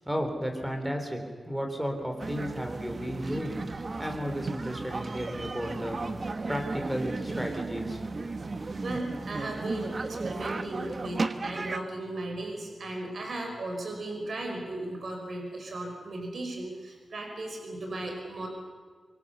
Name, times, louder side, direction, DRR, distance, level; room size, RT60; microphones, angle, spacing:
voice 1, 0.0-6.0 6.5-8.0, equal, 5° right, 4 dB, 4.1 m, -33 dB
sound 1, 2.2-11.8, right 3 dB, 40° right, 1.2 m, -35 dB
voice 2, 8.8-18.5, right 2 dB, 60° right, 2 dB, 5.4 m, -36 dB
25.0 x 24.5 x 7.1 m, 1.5 s
wide cardioid pair, 120°, 0 cm